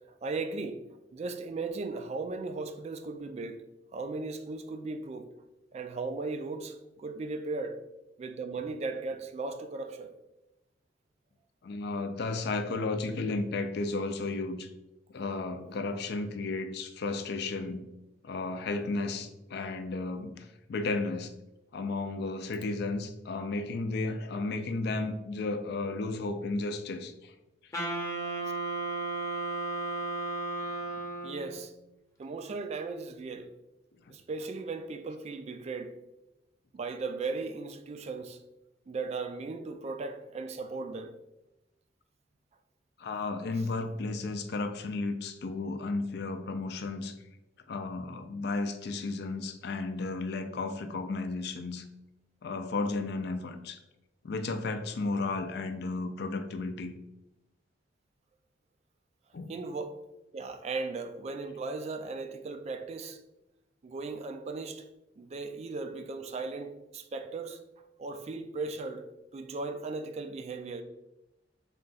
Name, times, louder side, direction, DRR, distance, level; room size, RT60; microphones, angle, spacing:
voice 1, 0.1-0.8 1.1-3.6 3.9-5.3 5.7-7.8 8.2-10.1 31.2-31.7 32.2-33.5 34.1-35.9 36.7-38.4 38.9-41.1 59.5-60.0 60.3-63.2 63.8-64.9 65.2-67.6 68.0-69.1 69.3-70.8, right 3 dB, 35° right, 0.3 m, -37 dB
voice 2, 11.6-14.7 15.1-17.8 18.2-21.3 21.7-27.3 43.0-47.1 47.7-51.8 52.4-53.8 54.2-56.9 59.3-59.5, left 3 dB, 65° left, 0.4 m, -33 dB
Wind instrument woodwind instrument, 27.7-31.6, right 2 dB, 15° left, 0.7 m, -34 dB
3.7 x 2.3 x 3.9 m
head